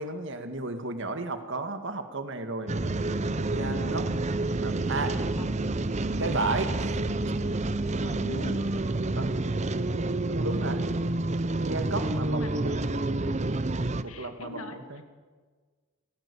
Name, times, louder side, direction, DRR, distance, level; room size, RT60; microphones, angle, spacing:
voice 1, 0.0-2.7 3.4-4.0 4.6-5.2 6.2-6.7 9.2-9.4 10.3-10.8 11.6-13.0 14.0-15.0, right 2 dB, 60° right, 8 dB, 1.8 m, -33 dB
sound 1, 2.7-14.0, right 2 dB, 30° right, 0.7 m, -28 dB
voice 2, 3.6-4.0 5.0-5.5 6.2-6.6 7.9-8.7 12.3-12.8 14.0-14.8, left 1 dB, 80° left, 6 dB, 2.2 m, -41 dB
19.5 x 16.0 x 8.5 m, 1.5 s
head